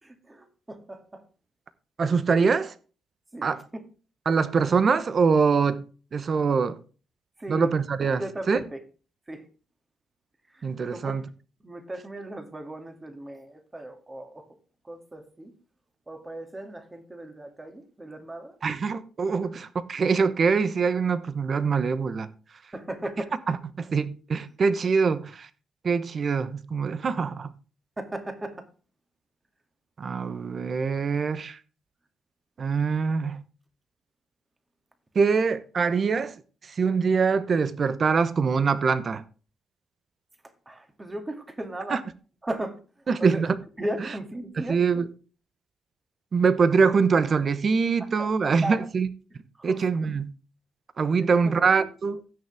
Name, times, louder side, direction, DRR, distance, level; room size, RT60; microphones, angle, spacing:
voice 1, 0.0-1.2 3.3-3.8 7.4-7.7 8.2-8.8 9.3-9.5 10.5-11.1 11.6-14.5 14.8-15.5 16.1-18.6 19.4-19.5 22.7-23.3 28.0-28.7 40.7-42.1 42.4-42.8 43.2-43.4 43.8-44.8 48.0-48.8 49.6-49.8 51.2-51.9, right 1 dB, 20° right, 2.4 m, -37 dB
voice 2, 2.0-2.7 3.4-3.6 4.3-5.8 6.1-6.8 7.5-8.2 8.5-8.6 10.6-11.2 18.6-22.3 23.5-25.5 25.8-27.5 30.0-31.6 32.6-33.4 35.1-36.3 36.8-39.2 41.9-42.0 43.1-43.5 44.7-45.1 46.3-49.1 49.6-50.3 51.0-52.2, right 5 dB, 45° right, 1.0 m, -24 dB
15.5 x 6.7 x 3.5 m
cardioid pair, 90°, 0 cm